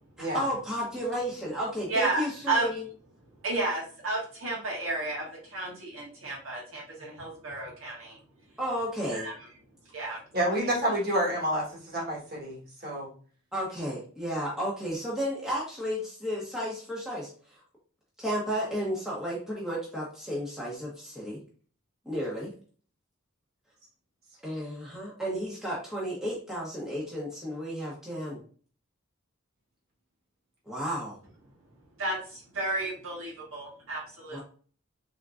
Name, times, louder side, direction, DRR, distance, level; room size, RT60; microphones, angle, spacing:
voice 1, 0.2-2.8 8.6-9.3 13.5-17.6 18.2-21.4 22.1-22.5 24.4-28.4 30.7-31.2 34.3-34.4, equal, ahead, -6 dB, 0.8 m, -33 dB
voice 2, 1.9-2.7 3.4-8.2 9.1-9.3 9.9-10.2 32.0-34.4, right 2 dB, 75° right, -3 dB, 1.7 m, -32 dB
voice 3, 10.3-13.1, right 1 dB, 45° right, -3 dB, 1.4 m, -29 dB
3.6 x 3.5 x 2.4 m, 0.43 s
head